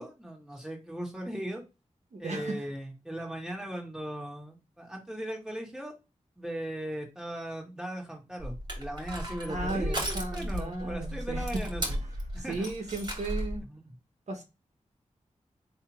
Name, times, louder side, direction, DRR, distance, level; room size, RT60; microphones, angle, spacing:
voice 1, 0.0-1.6 2.2-5.9 6.4-12.0 12.3-12.7 13.6-13.9, right 1 dB, 5° right, 2.0 m, -38 dB
voice 2, 2.1-2.6 9.5-11.6 12.4-13.6 14.3-14.4, right 2 dB, 65° right, 1.1 m, -35 dB
Crushing, 8.4-13.6, equal, 35° right, 2.1 m, -35 dB
3.6 x 2.9 x 4.4 m
cardioid pair, 50°, 13 cm